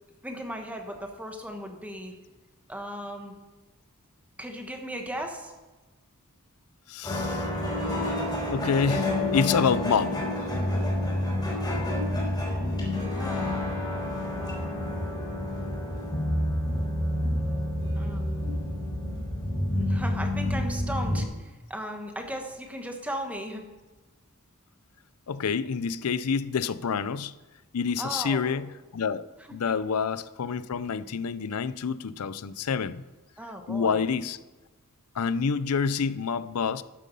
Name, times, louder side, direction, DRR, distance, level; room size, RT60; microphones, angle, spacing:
voice 1, 0.2-2.1 2.7-3.3 4.4-5.5 11.3-11.9 13.1-13.6 14.3-14.7 17.9-18.2 19.8-23.6 28.0-28.5 33.4-34.1, equal, 5° right, 4 dB, 1.3 m, -37 dB
voice 2, 6.9-7.5 8.5-10.3 25.3-27.3 27.7-33.0 33.7-34.4 35.2-36.8, left 6 dB, 85° left, 16 dB, 0.5 m, -28 dB
sound 1, 7.0-21.2, left 1 dB, 20° left, 3.5 m, -29 dB
12.5 x 7.6 x 5.5 m, 1.2 s
head